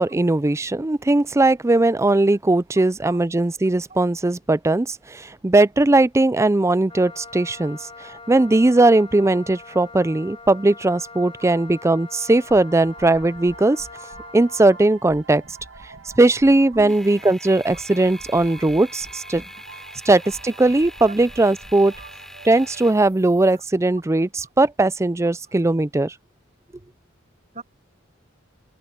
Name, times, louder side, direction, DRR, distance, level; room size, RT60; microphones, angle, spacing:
voice 1, 0.0-13.9 14.3-15.4 16.2-19.4 20.1-21.9 22.4-26.1, right 2 dB, 15° right, 0.4 m, -19 dB
voice 2, 2.8-3.2 3.9-4.0 11.4-11.5 16.7-17.0 17.7-17.8 21.0-21.2 22.0-22.1 23.6-23.7 24.4-24.5 27.5-27.6, right 2 dB, 40° right, 5.2 m, -40 dB
Wind instrument woodwind instrument, 6.9-14.9, left 4 dB, 30° left, 5.4 m, -42 dB
sound 1, 12.5-22.9, right 3 dB, 85° right, 2.3 m, -45 dB
sound 2, 16.9-23.7, equal, ahead, 4.5 m, -43 dB
head